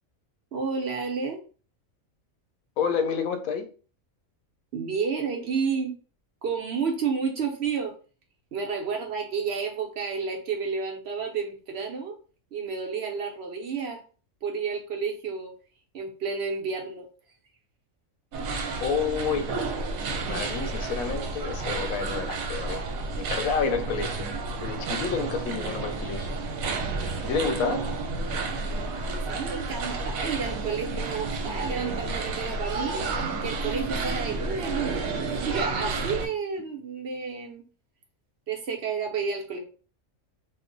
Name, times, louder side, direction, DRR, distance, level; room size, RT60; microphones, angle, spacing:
voice 1, 0.5-1.4 4.7-5.9 6.4-7.9 8.5-12.1 12.5-14.0 14.4-15.5 15.9-17.1 29.3-37.6 38.5-39.6, right 5 dB, 55° right, 0.9 m, -31 dB
voice 2, 2.8-3.7 18.8-19.6 20.3-22.8 23.2-24.3 24.6-26.3 27.2-27.9, left 5 dB, 90° left, 1.0 m, -29 dB
sound 1, 18.3-36.3, right 3 dB, 85° right, 1.1 m, -31 dB
2.9 x 2.0 x 3.7 m
omnidirectional pair, 1.4 m